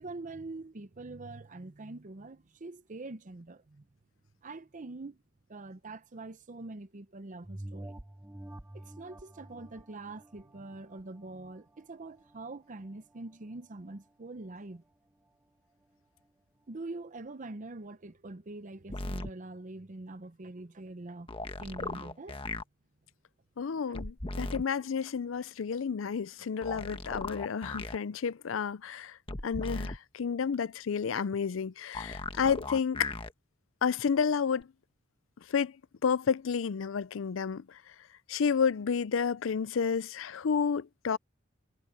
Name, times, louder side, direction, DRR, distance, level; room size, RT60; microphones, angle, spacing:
voice 1, 0.0-3.8 4.4-5.2 5.5-8.0 8.7-14.8 16.7-21.3 21.6-22.4 23.7-24.0 24.4-24.5, right 2 dB, 40° right, 0.7 m, -44 dB
sound 1, 7.4-12.4 12.9-13.0, right 1 dB, 10° right, 0.6 m, -48 dB
sound 2, 18.9-19.3 21.3-22.6 23.9-24.6 26.6-28.0 29.3-30.0 31.9-33.3 34.6-34.7, left 2 dB, 30° left, 1.3 m, -37 dB
voice 2, 23.6-29.2 29.4-33.1 33.8-34.7 35.5-35.7 36.0-37.6 38.3-41.2, left 6 dB, 80° left, 0.5 m, -30 dB
head